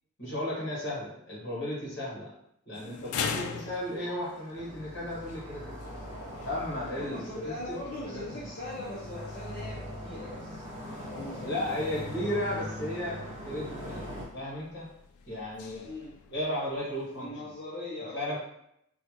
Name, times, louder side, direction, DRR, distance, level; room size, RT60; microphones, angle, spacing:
voice 1, 0.2-2.3 2.6-6.0 6.4-7.5 8.0-8.2 11.4-14.0 14.3-14.9 15.2-15.9 16.3-17.3 18.1-18.4, left 1 dB, 55° left, -7 dB, 1.4 m, -34 dB
sound 1, 2.7-17.3, left 6 dB, 85° left, 0.3 m, -44 dB
sound 2, 4.5-14.2, equal, 35° right, 1.1 m, -41 dB
voice 2, 7.0-12.3 15.8-16.2 17.2-18.4, left 2 dB, 40° left, -8 dB, 0.6 m, -41 dB
3.2 x 2.3 x 2.9 m, 0.76 s
head